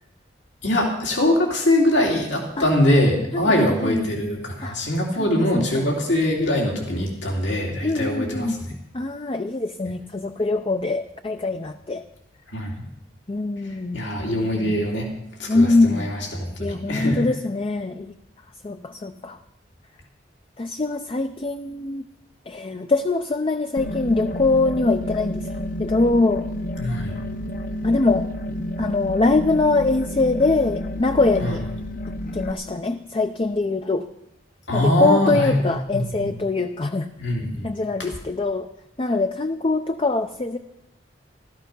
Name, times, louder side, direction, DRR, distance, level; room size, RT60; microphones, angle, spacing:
voice 1, 0.6-8.7 12.5-12.7 13.9-15.1 15.4-17.2 26.8-27.1 31.4-31.5 34.7-36.3 37.2-37.7, left 1 dB, 80° left, 0 dB, 2.7 m, -22 dB
voice 2, 3.3-4.0 4.6-4.7 5.1-5.9 7.8-8.6 8.9-12.0 13.3-14.0 15.5-16.1 16.6-18.1 18.6-19.4 20.6-22.0 22.5-25.4 25.8-26.5 27.8-28.3 28.8-31.7 32.3-34.1 34.7-37.4 37.6-38.7 39.0-40.6, left 3 dB, 30° left, 7 dB, 0.5 m, -23 dB
sound 1, 23.8-32.5, left 1 dB, 50° left, 0.9 m, -30 dB
14.0 x 13.5 x 5.4 m, 0.84 s
head